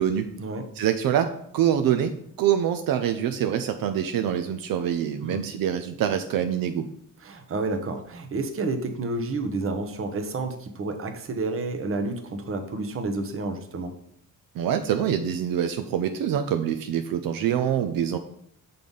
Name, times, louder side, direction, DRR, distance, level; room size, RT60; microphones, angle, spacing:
voice 1, 0.8-2.1 2.4-6.8 14.5-18.2, right 9 dB, 75° right, 8 dB, 0.6 m, -25 dB
voice 2, 7.2-13.9, right 3 dB, 40° right, 7 dB, 0.9 m, -30 dB
6.6 x 3.9 x 5.3 m, 0.70 s
cardioid pair, 135°, 35 cm